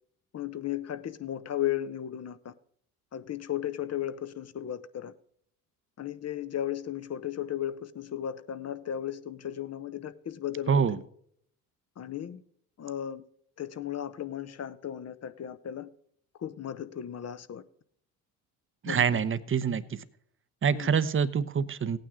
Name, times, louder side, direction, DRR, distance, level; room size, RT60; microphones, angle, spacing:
voice 1, 0.3-2.5 3.1-5.1 6.0-11.0 12.0-12.4 12.8-13.2 13.6-15.9 16.4-17.6 18.9-19.2 20.7-21.0, left 11 dB, 35° left, 14 dB, 0.9 m, -35 dB
voice 2, 10.7-11.0 18.8-20.0 20.6-22.0, right 6 dB, 25° right, 14 dB, 0.9 m, -26 dB
17.0 x 9.2 x 3.7 m, 0.67 s
hypercardioid pair, 65°, 45 cm